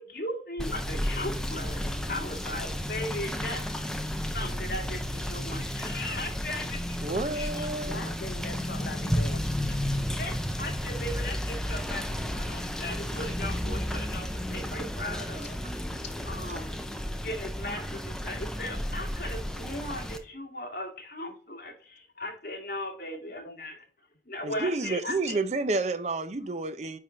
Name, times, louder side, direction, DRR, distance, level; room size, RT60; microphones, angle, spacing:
voice 1, 0.0-1.8 2.1-3.6 4.3-7.7 8.0-8.1 9.7-15.6 16.3-16.8 17.2-23.8 24.3-25.4, left 1 dB, 50° left, 1.9 m, -38 dB
Rain / Motor vehicle (road), 0.6-20.2, equal, 5° left, 0.5 m, -32 dB
voice 2, 7.0-8.1 24.4-27.0, right 3 dB, 40° right, 0.6 m, -30 dB
voice 3, 7.8-9.6 16.0-16.1 21.3-21.4 23.3-23.7, left 3 dB, 70° left, 0.7 m, -42 dB
9.6 x 3.6 x 3.8 m
head